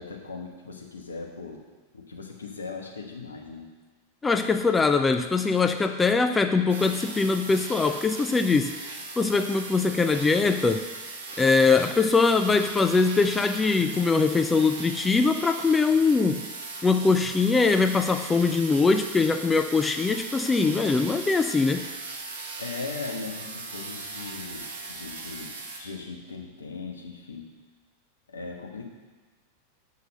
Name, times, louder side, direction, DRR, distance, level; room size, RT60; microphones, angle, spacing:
voice 1, 0.0-1.6 1.9-3.7 22.6-27.5 28.3-28.9, left 4 dB, 75° left, 1 dB, 1.3 m, -39 dB
voice 2, 4.2-10.9 11.4-16.5 16.8-21.9, left 4 dB, 15° left, 8 dB, 0.4 m, -22 dB
sound 1, 6.7-25.8, right 3 dB, 60° right, 1.5 m, -38 dB
7.9 x 5.6 x 6.6 m, 1.4 s
figure-of-eight pair, 90°, 0 cm